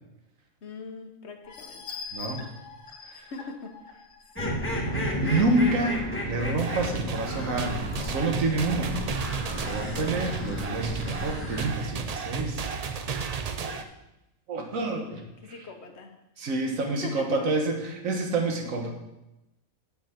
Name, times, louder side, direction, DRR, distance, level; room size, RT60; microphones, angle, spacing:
voice 1, 0.6-1.8 3.1-3.8 4.4-4.6 13.5-13.9 14.9-15.2 15.4-16.1 16.9-17.4 18.8-18.9, left 4 dB, 55° left, 5 dB, 1.2 m, -41 dB
sound 1, 1.4-5.9 6.4-6.5 6.9-7.0, left 5 dB, 75° left, 1.6 m, -43 dB
voice 2, 2.1-2.5 3.1-3.3 4.5-4.7 5.2-9.0 9.6-12.7 14.5-15.2 15.5-15.7 16.4-18.9, right 2 dB, 80° right, 3 dB, 1.7 m, -28 dB
sound 2, 4.3-11.7, equal, 10° left, 1.4 m, -33 dB
sound 3, 6.6-13.8, right 6 dB, 55° right, 0.4 m, -33 dB
9.0 x 7.7 x 4.5 m, 0.94 s
omnidirectional pair, 1.4 m